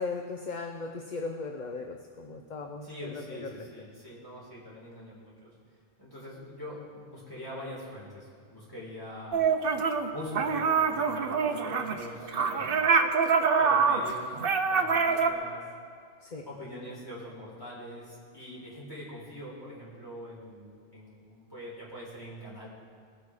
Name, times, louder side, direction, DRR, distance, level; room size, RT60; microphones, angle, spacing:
voice 1, 0.0-3.7 16.2-16.5, left 4 dB, 45° left, 4 dB, 0.8 m, -37 dB
voice 2, 2.8-5.5 6.0-9.4 10.1-12.9 13.5-15.6 16.4-22.7, equal, 20° left, -6 dB, 4.4 m, -43 dB
sound 1, 9.3-10.1 10.3-15.3, right 5 dB, 55° right, 1.0 m, -25 dB
20.5 x 8.3 x 5.0 m, 2.2 s
omnidirectional pair, 1.2 m